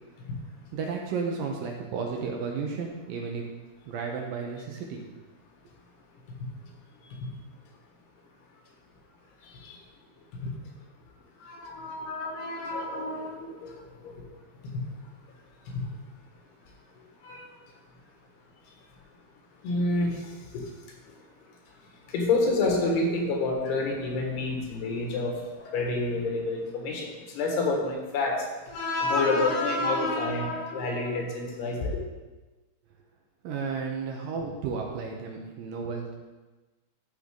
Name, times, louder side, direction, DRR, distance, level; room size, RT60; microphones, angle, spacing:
voice 1, 0.7-3.4 3.9-5.0 33.4-36.1, right 5 dB, 70° right, 1 dB, 2.2 m, -33 dB
voice 2, 11.4-14.2 14.7-14.8 15.7-15.8 17.2-17.4 19.6-20.6 22.1-32.0, left 2 dB, 80° left, 0 dB, 3.6 m, -28 dB
13.0 x 6.6 x 3.8 m, 1.2 s
omnidirectional pair, 4.6 m